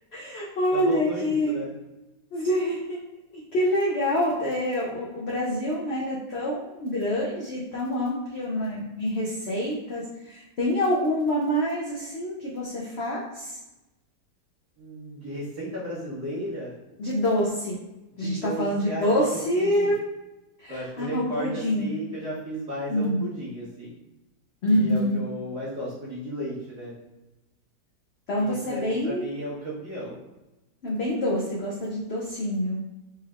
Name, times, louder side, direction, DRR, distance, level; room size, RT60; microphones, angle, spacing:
voice 1, 0.1-1.6 2.3-3.0 3.3-13.5 17.0-17.7 18.2-20.0 20.6-21.9 22.9-23.3 24.6-25.2 28.3-29.3 30.8-32.8, equal, 65° left, -4 dB, 0.6 m, -26 dB
voice 2, 0.7-1.7 14.8-16.8 18.2-19.9 20.7-23.9 24.7-26.9 28.4-30.2, equal, 65° right, -11 dB, 1.8 m, -34 dB
4.2 x 3.3 x 2.4 m, 1.0 s
omnidirectional pair, 1.9 m